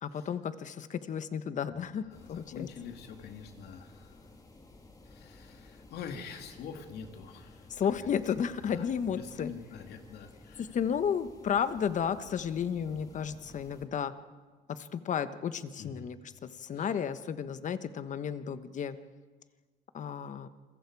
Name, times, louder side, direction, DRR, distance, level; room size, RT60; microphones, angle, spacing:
voice 1, 0.0-2.0 2.3-2.7 7.7-9.5 10.6-14.1 14.7-19.0 19.9-20.5, left 7 dB, 45° left, 11 dB, 1.3 m, -33 dB
voice 2, 1.7-4.2 5.0-7.7 8.0-8.1 8.6-10.7 15.8-16.1 16.8-16.9, left 6 dB, 70° left, 4 dB, 2.7 m, -45 dB
sound 1, 2.1-13.8, left 2 dB, 20° left, 2.6 m, -55 dB
28.0 x 22.5 x 4.8 m, 1.4 s
cardioid pair, 110°, 17 cm